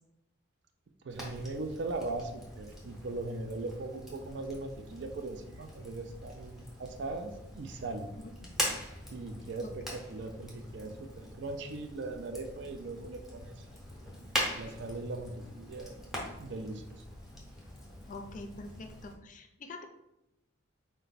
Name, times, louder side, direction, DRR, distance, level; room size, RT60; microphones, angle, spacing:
voice 1, 1.0-8.1 9.1-13.6 14.6-16.0 16.4-17.0, right 2 dB, 60° right, 6 dB, 0.4 m, -39 dB
Fire, 1.1-19.1, left 1 dB, ahead, 0.7 m, -42 dB
voice 2, 18.0-19.8, left 2 dB, 40° left, 6 dB, 0.4 m, -45 dB
4.3 x 2.2 x 3.9 m, 0.89 s
head